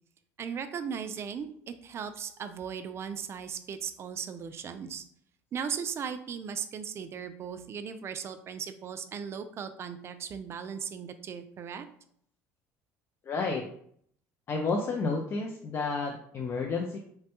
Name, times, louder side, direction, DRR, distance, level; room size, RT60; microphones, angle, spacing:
voice 1, 0.4-5.0 5.5-11.9, right 7 dB, 40° right, 9 dB, 0.3 m, -37 dB
voice 2, 13.3-13.6 14.5-17.0, left 4 dB, 40° left, 1 dB, 0.4 m, -31 dB
3.2 x 2.2 x 2.9 m, 0.64 s
supercardioid pair, 95°, 7 cm